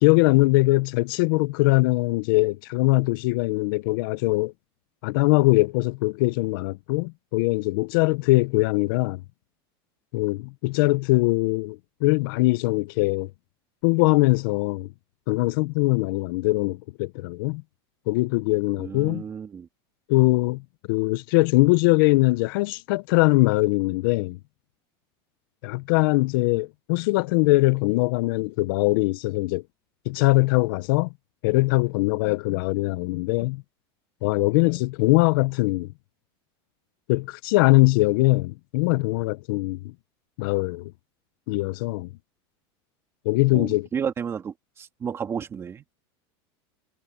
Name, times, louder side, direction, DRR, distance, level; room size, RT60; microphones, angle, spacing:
voice 1, 0.0-4.5 5.0-9.2 10.1-13.3 13.8-14.9 15.3-17.6 18.1-19.2 20.1-20.6 20.9-24.4 25.6-29.6 30.1-31.1 31.4-33.6 34.2-35.9 37.1-39.8 40.4-40.9 41.5-42.1 43.3-43.9, left 22 dB, 60° left, 0.5 m, -22 dB
voice 2, 18.8-19.7 43.5-45.8, right 7 dB, 20° right, 2.3 m, -32 dB
supercardioid pair, 160°, 13 cm